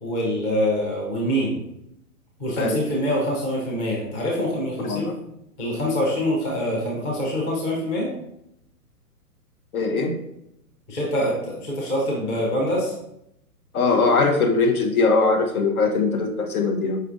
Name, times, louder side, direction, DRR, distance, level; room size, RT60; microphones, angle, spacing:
voice 1, 0.0-1.6 2.4-5.1 5.6-8.1 10.9-12.9, equal, 15° left, -3 dB, 0.5 m, -25 dB
voice 2, 4.8-5.1 9.7-10.2 13.7-17.0, left 3 dB, 70° left, 5 dB, 0.9 m, -21 dB
5.0 x 3.3 x 2.5 m, 0.80 s
hypercardioid pair, 130°, 46 cm